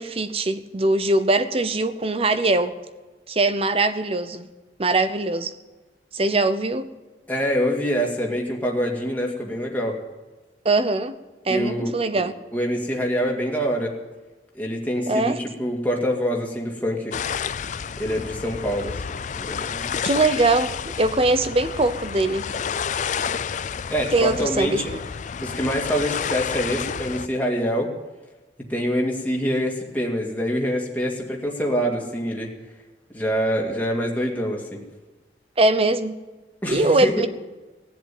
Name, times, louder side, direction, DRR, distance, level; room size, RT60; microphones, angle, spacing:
voice 1, 0.0-2.7 3.3-4.5 4.8-5.5 6.1-6.9 10.6-11.1 11.4-12.3 15.1-15.4 20.0-22.5 24.1-25.0 35.6-36.2 36.7-37.3, right 2 dB, 35° right, 12 dB, 0.8 m, -21 dB
voice 2, 7.3-10.0 11.5-11.9 12.5-13.9 14.5-17.2 18.0-20.1 23.9-24.9 25.4-27.9 28.7-32.5 33.1-34.8 36.6-37.3, equal, 10° left, -1 dB, 2.2 m, -25 dB
sound 1, 17.1-27.3, left 7 dB, 45° left, 0.4 m, -30 dB
17.5 x 7.7 x 9.3 m, 1.2 s
head